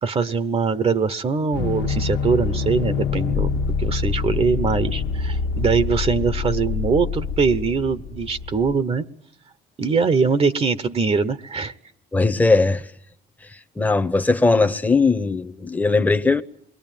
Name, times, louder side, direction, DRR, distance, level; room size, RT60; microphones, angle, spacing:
voice 1, 0.0-9.0 9.8-11.7, right 5 dB, 35° right, 1.1 m, -22 dB
sound 1, 1.5-8.7, left 5 dB, 85° left, 1.4 m, -25 dB
voice 2, 12.1-12.9 13.5-16.4, left 3 dB, 10° left, 1.1 m, -19 dB
28.0 x 22.5 x 9.2 m
cardioid pair, 110°, 17 cm